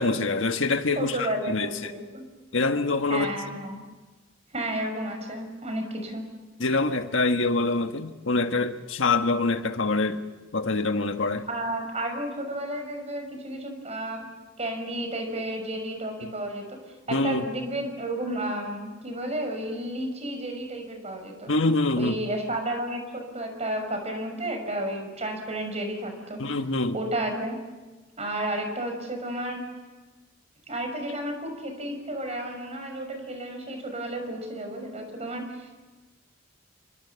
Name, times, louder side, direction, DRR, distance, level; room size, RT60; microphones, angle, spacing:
voice 1, 0.0-1.9 2.5-3.3 6.6-10.2 10.5-11.5 17.1-17.4 21.5-22.1 26.4-27.0, left 3 dB, 75° left, 1.6 m, -25 dB
voice 2, 1.0-2.2 3.1-3.8 4.5-6.2 11.5-14.3 14.6-16.8 17.1-21.5 22.0-26.4 26.9-27.6 28.2-29.6 30.7-35.7, right 1 dB, 35° right, 5.9 m, -32 dB
28.0 x 25.0 x 7.1 m
head